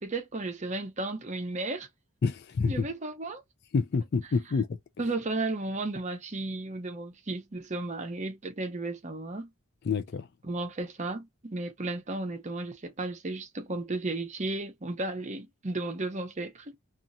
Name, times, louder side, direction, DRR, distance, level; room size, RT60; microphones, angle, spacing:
voice 1, 0.0-1.9 2.7-3.4 5.0-9.5 10.4-16.7, right 2 dB, 30° right, 0.6 m, -34 dB
voice 2, 2.2-2.9 3.7-4.8 9.8-10.3, left 4 dB, 45° left, 0.3 m, -28 dB
2.8 x 2.4 x 2.6 m
head